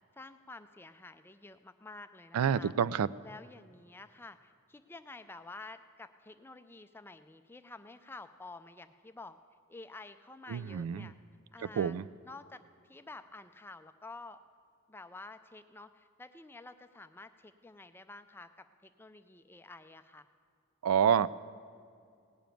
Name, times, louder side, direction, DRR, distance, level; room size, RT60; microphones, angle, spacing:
voice 1, 0.1-2.7 3.2-9.4 9.7-11.2 11.5-12.0 12.2-14.4 14.9-20.3, left 3 dB, 10° left, 10 dB, 0.3 m, -50 dB
voice 2, 2.3-3.1 10.5-11.1 11.8-12.1 20.8-21.3, right 8 dB, 85° right, 17 dB, 0.3 m, -28 dB
17.5 x 6.9 x 9.1 m, 2.4 s
head